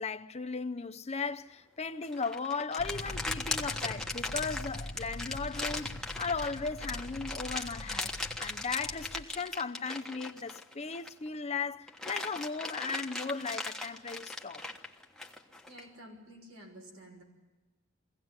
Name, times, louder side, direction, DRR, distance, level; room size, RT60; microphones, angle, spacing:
voice 1, 0.0-8.1 8.4-14.6, left 4 dB, 30° left, 0.7 m, -36 dB
sound 1, 2.0-11.3 11.7-15.8, left 2 dB, 5° left, 1.3 m, -38 dB
sound 2, 2.8-9.2, left 1 dB, 70° left, 1.1 m, -43 dB
voice 2, 15.7-17.2, right 1 dB, 85° right, 5.9 m, -51 dB
23.5 x 17.0 x 9.6 m
head